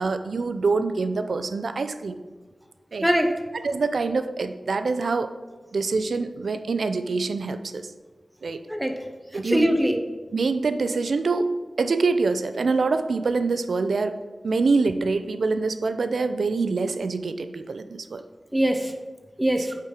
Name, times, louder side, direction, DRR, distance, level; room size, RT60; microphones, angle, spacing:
voice 1, 0.0-2.2 2.9-3.1 3.6-5.3 5.7-7.9 8.4-8.6 9.3-9.7 10.3-11.5 11.8-14.2 14.4-18.2, right 4 dB, 85° right, 10 dB, 0.4 m, -25 dB
voice 2, 3.0-3.4 8.7-9.1 9.3-10.0 18.5-18.9 19.4-19.8, equal, 10° right, 5 dB, 0.6 m, -22 dB
8.4 x 4.4 x 4.8 m, 1.3 s
wide cardioid pair, 75°, 0 cm